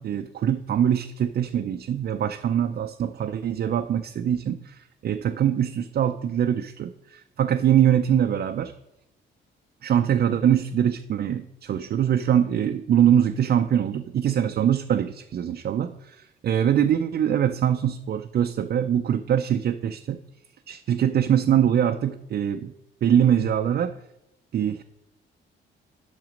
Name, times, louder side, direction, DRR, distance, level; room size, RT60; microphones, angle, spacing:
voice 1, 0.0-8.7 9.8-20.2 20.7-22.7 23.0-24.0 24.5-24.8, right 9 dB, 50° right, 6 dB, 0.5 m, -23 dB
9.3 x 6.1 x 5.1 m, 0.89 s
cardioid pair, 90°, 20 cm